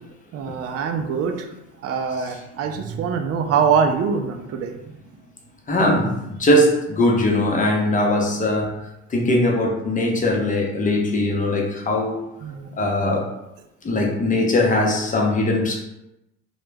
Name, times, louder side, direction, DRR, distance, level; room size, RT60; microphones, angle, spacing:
voice 1, 0.3-1.5 1.8-4.8 12.4-12.7, right 6 dB, 50° right, 5 dB, 0.4 m, -23 dB
voice 2, 5.7-8.7 9.1-12.2 12.8-13.3 13.8-15.8, left 1 dB, 25° left, 0 dB, 0.6 m, -20 dB
2.2 x 2.0 x 3.2 m, 0.88 s
supercardioid pair, 90°, 31 cm